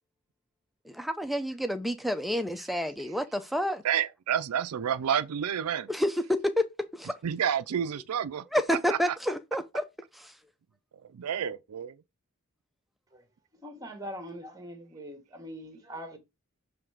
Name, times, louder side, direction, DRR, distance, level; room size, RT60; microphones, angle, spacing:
voice 1, 0.9-3.8 5.9-6.7 6.9-7.2 8.5-9.8 10.1-10.3, equal, ahead, 0.5 m, -29 dB
voice 2, 3.8-5.9 7.0-9.2 11.1-11.9, right 8 dB, 85° right, 0.4 m, -30 dB
voice 3, 13.6-16.2, equal, 15° right, 1.3 m, -42 dB
7.0 x 3.3 x 4.8 m
head